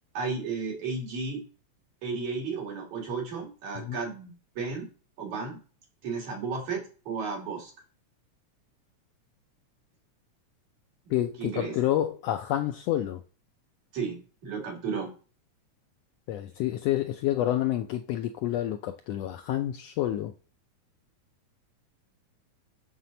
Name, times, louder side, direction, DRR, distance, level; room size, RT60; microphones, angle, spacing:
voice 1, 0.1-1.4 2.0-4.9 5.2-5.6 6.0-7.7 11.1-11.2 11.4-11.7 13.9-15.1, right 4 dB, 75° right, 4.1 m, -33 dB
voice 2, 11.1-13.2 16.3-20.3, left 13 dB, 80° left, 1.5 m, -28 dB
7.6 x 4.2 x 6.7 m
omnidirectional pair, 3.3 m